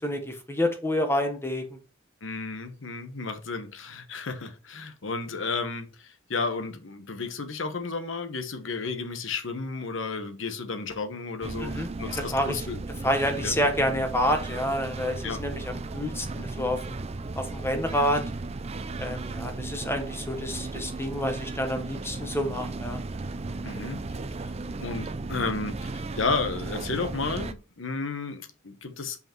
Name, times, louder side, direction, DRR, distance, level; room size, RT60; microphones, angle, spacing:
voice 1, 0.0-1.8 11.6-12.6 13.0-17.0 17.4-18.2 19.0-23.0, left 1 dB, 15° left, 1.0 m, -28 dB
voice 2, 2.2-13.1 13.4-13.5 15.2-15.4 23.6-24.0 24.4-24.5 24.8-29.2, left 4 dB, 75° left, 1.1 m, -33 dB
sound 1, 11.4-27.5, right 3 dB, 35° right, 0.5 m, -35 dB
5.5 x 5.3 x 4.4 m
head